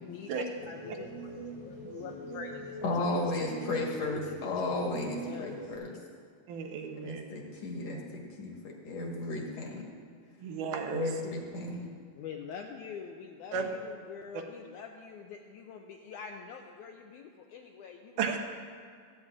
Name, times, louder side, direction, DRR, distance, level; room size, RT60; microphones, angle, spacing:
voice 1, 0.0-3.1 4.0-4.4 5.2-5.8 12.1-18.3, left 6 dB, 85° left, 3 dB, 1.7 m, -45 dB
sound 1, 0.5-5.8, right 2 dB, 35° right, 1.4 m, -41 dB
voice 2, 2.8-5.9 7.0-9.8 10.9-11.9, left 2 dB, 55° left, -1 dB, 2.2 m, -34 dB
voice 3, 6.5-7.2 10.4-11.1 13.5-13.7 14.3-14.4 18.2-18.4, right 6 dB, 75° right, 4 dB, 2.2 m, -33 dB
25.0 x 9.2 x 2.5 m, 2.1 s
omnidirectional pair, 4.1 m